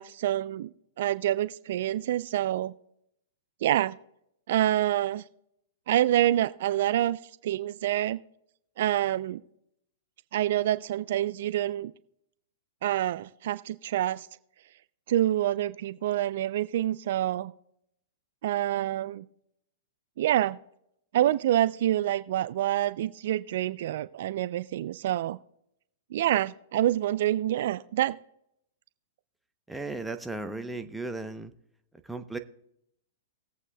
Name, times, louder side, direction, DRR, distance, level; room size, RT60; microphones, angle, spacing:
voice 1, 0.0-2.7 3.6-4.0 4.5-5.2 5.9-8.2 8.8-9.4 10.3-11.9 12.8-14.3 15.1-17.5 18.4-19.3 20.2-20.6 21.1-25.4 26.1-28.2, right 12 dB, 60° right, 15 dB, 0.4 m, -27 dB
voice 2, 29.7-31.5 32.0-32.4, right 2 dB, 5° right, 7 dB, 0.8 m, -35 dB
20.0 x 8.1 x 2.3 m, 0.75 s
hypercardioid pair, 120°, 0 cm